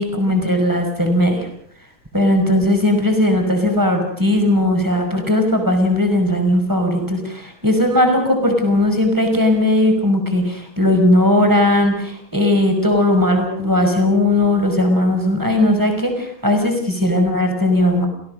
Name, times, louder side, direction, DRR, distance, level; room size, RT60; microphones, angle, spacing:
voice 1, 0.0-1.5 2.1-18.1, left 1 dB, 5° right, 3 dB, 5.0 m, -17 dB
29.0 x 17.0 x 6.5 m, 0.67 s
omnidirectional pair, 4.5 m